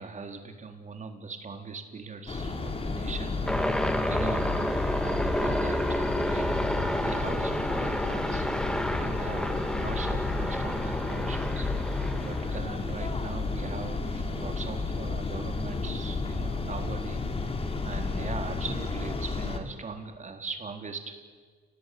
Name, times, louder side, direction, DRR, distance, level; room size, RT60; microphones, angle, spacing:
voice 1, 0.0-3.5 4.1-11.7 12.2-17.2 17.6-21.1, right 4 dB, 40° right, 4 dB, 4.1 m, -40 dB
sound 1, 2.3-19.6, left 3 dB, 30° left, 3.4 m, -32 dB
sound 2, 3.5-12.6, equal, 5° left, 1.8 m, -30 dB
29.5 x 19.0 x 9.7 m, 1.5 s
cardioid pair, 90°, 20 cm